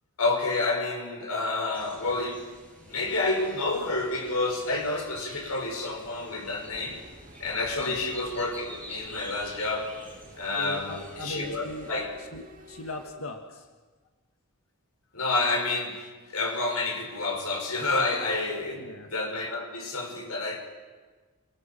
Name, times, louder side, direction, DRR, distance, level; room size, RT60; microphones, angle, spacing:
voice 1, 0.2-2.4 2.8-7.0 7.4-9.9 10.4-12.1 15.1-20.6, left 3 dB, 90° left, 1 dB, 6.4 m, -29 dB
sound 1, 1.7-12.0, equal, 5° left, 7.3 m, -48 dB
sound 2, 6.5-13.2, right 1 dB, 40° right, 2.4 m, -50 dB
voice 2, 10.6-11.9 12.2-13.7 18.7-19.1, left 2 dB, 75° left, 4 dB, 1.7 m, -39 dB
29.0 x 20.5 x 7.5 m, 1.4 s
head